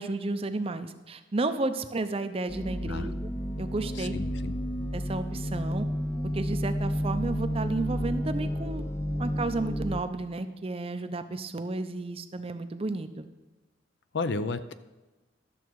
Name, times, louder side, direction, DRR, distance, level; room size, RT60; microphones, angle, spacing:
voice 1, 0.0-3.3 3.6-4.2 4.9-5.9 6.3-8.8 9.2-13.3, right 2 dB, 30° right, 10 dB, 0.5 m, -32 dB
sound 1, 2.5-10.0, equal, 15° left, 0.6 m, -31 dB
voice 2, 3.9-4.5 14.1-14.7, left 3 dB, 60° left, 12 dB, 0.5 m, -32 dB
12.5 x 7.0 x 4.6 m, 1.2 s
head